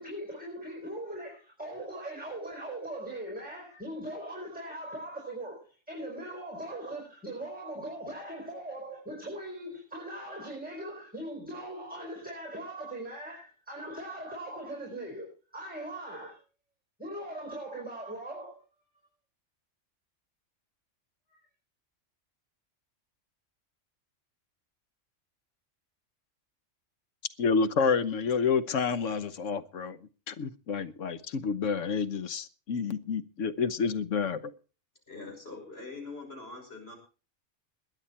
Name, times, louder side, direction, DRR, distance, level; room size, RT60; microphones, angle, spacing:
voice 1, 0.0-15.3 15.5-16.4 17.0-18.6, right 1 dB, 5° right, 4.8 m, -40 dB
voice 2, 27.4-30.0 30.3-34.5, left 5 dB, 80° left, 1.3 m, -29 dB
voice 3, 35.1-37.0, left 3 dB, 50° left, 6.1 m, -43 dB
21.5 x 9.0 x 4.3 m
omnidirectional pair, 1.3 m